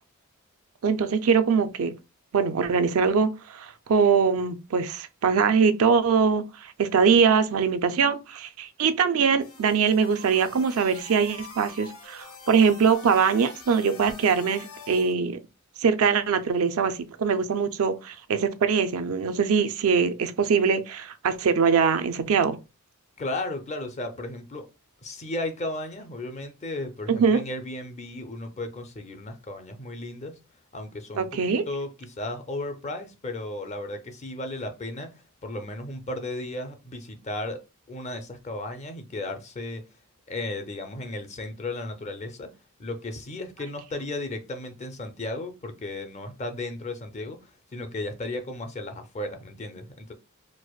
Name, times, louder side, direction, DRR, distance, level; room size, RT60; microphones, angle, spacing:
voice 1, 0.8-1.9 2.3-15.4 15.8-22.6 27.1-27.4 31.2-31.6, right 6 dB, 80° right, 0.4 m, -22 dB
sound 1, 9.4-15.1, left 4 dB, 85° left, 0.8 m, -45 dB
voice 2, 23.2-24.7 25.0-30.3 30.7-37.6 37.9-39.8 40.3-42.5 42.8-50.1, left 2 dB, 35° left, 0.6 m, -35 dB
4.6 x 2.0 x 2.3 m
head